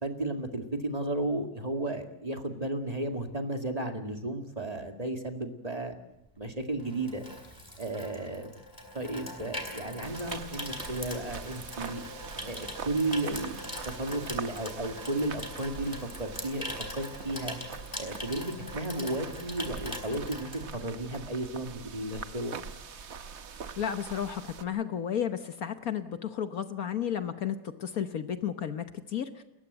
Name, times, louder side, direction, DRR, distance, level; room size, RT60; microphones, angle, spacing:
voice 1, 0.0-6.0 6.4-7.2 7.8-8.5 8.9-12.0 12.4-17.6 18.0-22.6, right 1 dB, 20° right, 5 dB, 2.0 m, -34 dB
Water tap faucet / Sink (filling or washing), 6.3-21.3 21.6-21.9, equal, 10° left, 3.8 m, -42 dB
sound 1, 10.0-24.6, right 6 dB, 45° right, 1.2 m, -43 dB
voice 2, 23.8-29.4, left 9 dB, 60° left, 9 dB, 1.4 m, -33 dB
29.5 x 15.0 x 8.0 m, 0.86 s
omnidirectional pair, 1.8 m